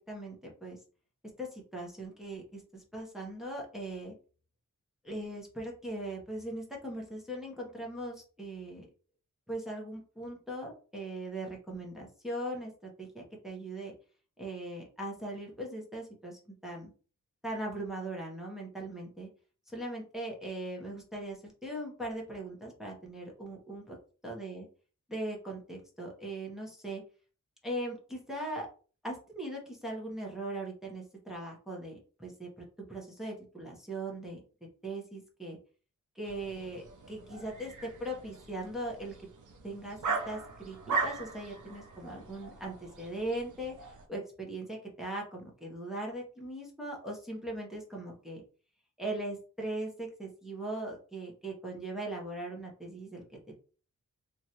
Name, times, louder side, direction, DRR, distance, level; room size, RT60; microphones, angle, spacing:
voice 1, 0.1-0.8 1.4-4.1 5.0-8.9 9.5-13.9 14.4-16.9 17.4-19.3 19.7-24.0 24.2-24.7 25.1-27.0 27.6-28.7 29.0-34.4 34.8-35.6 36.2-39.1 39.6-48.4 49.0-53.2, right 1 dB, ahead, -2 dB, 0.8 m, -40 dB
sound 1, 36.2-44.1, right 4 dB, 80° right, 0.6 m, -39 dB
3.1 x 2.5 x 2.8 m, 0.38 s
wide cardioid pair, 165°, 30 cm